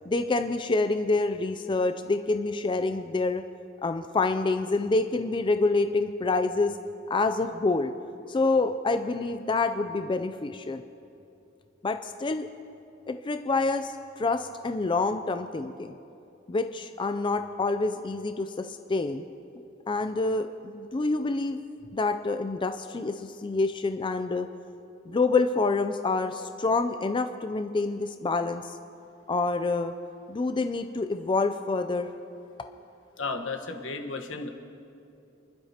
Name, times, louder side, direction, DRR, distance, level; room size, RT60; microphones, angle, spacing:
voice 1, 0.1-3.4 3.8-6.8 7.1-7.9 8.3-10.8 11.8-12.5 13.1-15.9 16.5-19.2 19.9-21.6 21.9-24.5 25.1-28.8 29.3-29.9 30.3-32.1, left 3 dB, 25° left, 8 dB, 0.4 m, -27 dB
voice 2, 33.2-34.5, left 3 dB, 75° left, 4 dB, 1.3 m, -33 dB
28.5 x 11.5 x 2.9 m, 2.8 s
head